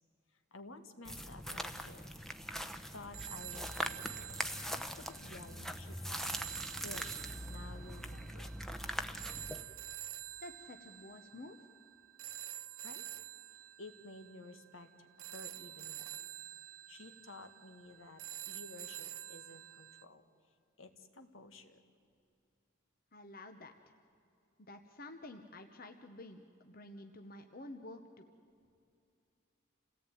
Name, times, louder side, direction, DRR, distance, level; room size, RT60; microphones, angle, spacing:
voice 1, 0.5-2.1 2.9-4.4 4.7-6.3 6.8-7.1 7.4-8.5 12.8-13.0 13.8-16.1 16.9-20.2 20.8-21.8, left 2 dB, 75° left, 7 dB, 1.9 m, -53 dB
sound 1, 1.0-9.6, equal, ahead, 0.9 m, -42 dB
sound 2, 3.1-20.0, right 13 dB, 75° right, 0.9 m, -48 dB
voice 2, 10.4-11.6 23.1-23.9 24.7-28.3, left 2 dB, 45° left, 6 dB, 1.1 m, -50 dB
28.0 x 17.5 x 9.2 m, 2.5 s
head